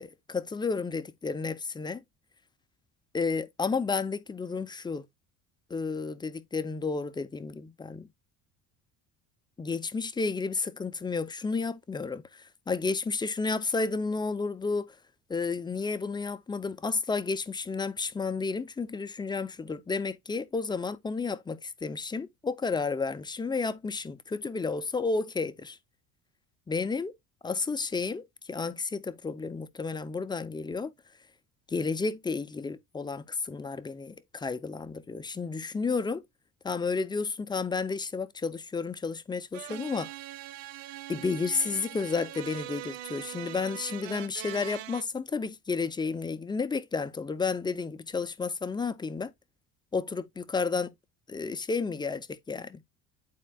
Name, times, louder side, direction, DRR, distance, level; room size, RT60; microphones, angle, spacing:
voice 1, 0.0-2.0 3.1-5.0 5.7-8.1 9.6-14.9 15.3-25.8 26.7-27.1 27.4-30.9 31.7-36.2 36.6-40.1 41.1-49.3 49.9-50.9 51.3-52.8, left 4 dB, 15° left, 0.4 m, -32 dB
sound 1, 39.5-45.0, right 14 dB, 80° right, 0.7 m, -42 dB
11.0 x 4.3 x 2.2 m
cardioid pair, 125°, 34 cm